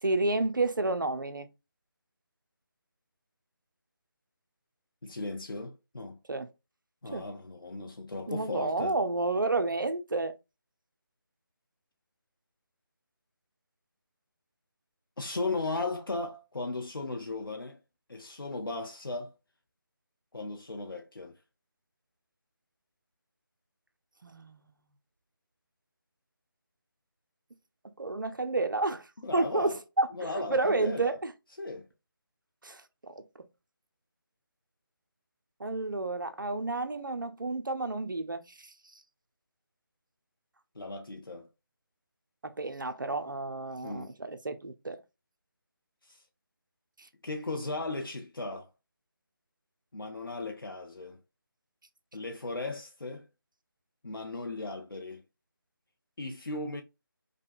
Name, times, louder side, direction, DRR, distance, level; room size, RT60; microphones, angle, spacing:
voice 1, 0.0-1.5 6.3-6.5 7.1-7.3 8.3-10.3 24.2-24.7 28.0-29.1 29.3-31.3 32.6-33.2 35.6-39.0 42.4-45.0 47.0-47.1, right 2 dB, 60° right, 0.7 m, -31 dB
voice 2, 5.0-6.2 7.0-8.9 15.2-17.8 18.1-19.3 20.3-21.4 29.2-29.8 30.1-31.1 31.6-31.9 40.8-41.5 43.8-44.1 46.0-46.2 47.2-48.7 49.9-51.2 52.1-53.3 54.0-55.2 56.2-56.8, left 2 dB, 75° left, 0.7 m, -36 dB
5.0 x 2.3 x 2.5 m
figure-of-eight pair, 155°, 12 cm